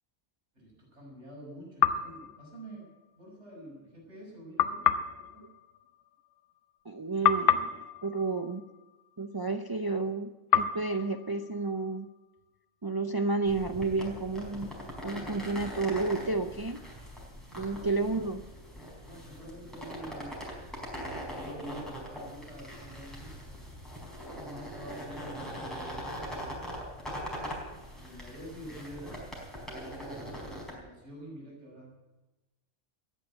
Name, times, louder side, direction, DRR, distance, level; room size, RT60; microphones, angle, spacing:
voice 1, 0.5-2.9 3.1-4.8 5.2-5.5 19.0-20.3 20.7-23.4 24.3-26.6 27.7-29.2 29.5-31.9, equal, 75° right, -3 dB, 6.5 m, -47 dB
sound 1, 1.8-3.2 4.6-6.9 7.2-9.5 10.5-12.4, left 8 dB, 85° left, 1.1 m, -31 dB
voice 2, 6.8-8.6 9.2-12.1 12.8-14.7 15.0-16.8 17.5-18.4, right 3 dB, 25° right, 7 dB, 0.5 m, -31 dB
sound 2, 13.4-30.7, equal, ahead, 4.6 m, -41 dB
14.5 x 9.4 x 8.7 m, 1.1 s
omnidirectional pair, 1.2 m